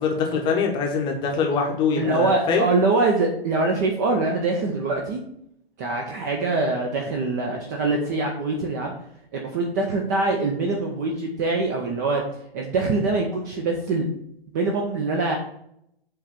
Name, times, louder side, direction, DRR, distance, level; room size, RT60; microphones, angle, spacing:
voice 1, 0.0-2.6, left 5 dB, 15° left, 1 dB, 0.9 m, -23 dB
voice 2, 2.0-5.2 5.8-8.9 9.3-12.2 12.5-14.0 14.5-15.4, right 3 dB, 15° right, 1 dB, 0.5 m, -24 dB
7.7 x 3.3 x 5.8 m, 0.73 s
figure-of-eight pair, 125°, 31 cm